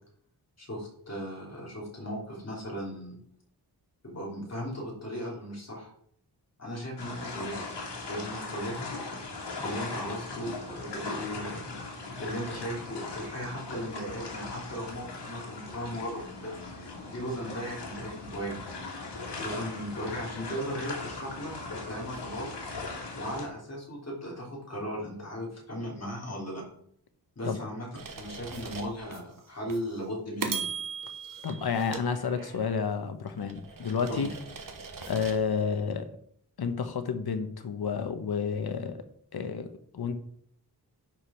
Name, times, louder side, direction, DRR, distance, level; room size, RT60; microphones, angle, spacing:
voice 1, 0.6-3.2 4.0-5.9 6.6-7.6 8.0-8.9 9.6-18.6 19.3-22.5 23.1-26.6 27.3-27.9 28.2-30.7 34.1-34.3, equal, 40° left, -3 dB, 3.3 m, -37 dB
sound 1, 7.0-23.5, left 3 dB, 90° left, 2.3 m, -39 dB
sound 2, 27.9-29.2 29.7-29.9 30.4-32.8 33.3-35.4, right 5 dB, 55° right, 1.1 m, -39 dB
voice 2, 31.4-34.3 35.1-36.1 36.6-39.0 39.3-40.2, left 6 dB, 65° left, 8 dB, 1.1 m, -30 dB
10.5 x 4.9 x 4.4 m, 0.66 s
wide cardioid pair, 145°, 40 cm